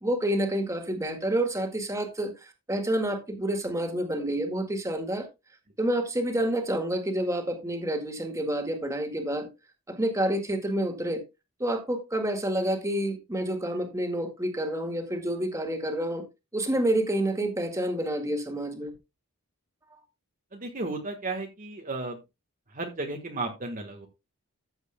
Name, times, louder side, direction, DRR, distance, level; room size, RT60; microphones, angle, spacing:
voice 1, 0.0-5.3 5.8-9.5 9.9-11.2 11.6-16.2 16.5-18.9 19.9-20.0, right 1 dB, 15° right, 1.9 m, -28 dB
voice 2, 20.5-22.2 22.7-24.1, right 2 dB, 35° right, 1.4 m, -34 dB
14.0 x 8.0 x 2.2 m
head